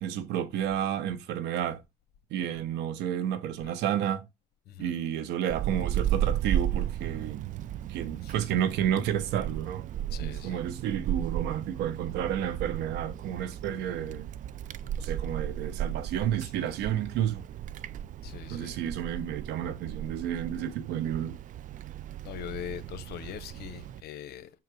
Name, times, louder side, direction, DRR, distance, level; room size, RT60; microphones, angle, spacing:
voice 1, 0.0-1.8 2.3-4.2 4.8-7.4 7.9-9.8 10.2-14.3 15.0-17.4 18.5-21.4, right 10 dB, 85° right, 0.8 m, -31 dB
Wind, 5.5-24.0, right 10 dB, 50° right, 0.4 m, -35 dB
voice 2, 10.1-10.6 18.2-18.7 22.2-24.5, left 10 dB, 70° left, 0.9 m, -41 dB
5.7 x 3.9 x 4.6 m
cardioid pair, 110°, 17 cm